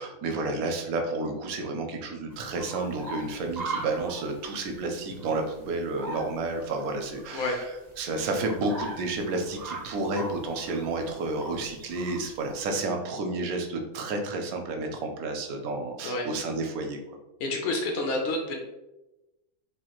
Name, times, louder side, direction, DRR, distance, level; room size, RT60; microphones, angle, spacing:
voice 1, 0.0-7.7 8.0-17.0, right 2 dB, 80° right, 4 dB, 1.0 m, -31 dB
sound 1, 2.3-12.7, right 2 dB, 45° right, 0.5 m, -41 dB
voice 2, 17.4-18.6, left 2 dB, 70° left, 1 dB, 0.6 m, -29 dB
3.1 x 2.3 x 2.9 m, 0.98 s
omnidirectional pair, 1.5 m